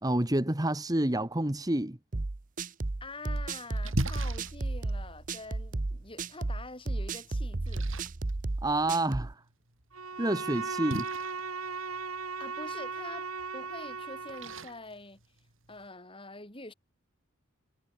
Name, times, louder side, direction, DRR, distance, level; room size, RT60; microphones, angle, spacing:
voice 1, 0.0-2.0 8.6-9.4 10.2-11.1, right 1 dB, 15° right, 1.3 m, -28 dB
sound 1, 2.1-9.3, right 2 dB, 40° right, 0.7 m, -33 dB
Splash splatter, 2.9-15.9, right 1 dB, 65° right, 4.4 m, -43 dB
voice 2, 3.0-7.8 12.4-13.3 13.5-15.2 15.7-16.7, left 2 dB, 25° left, 6.1 m, -45 dB
Bowed string instrument, 9.9-14.7, right 4 dB, 85° right, 6.5 m, -37 dB
head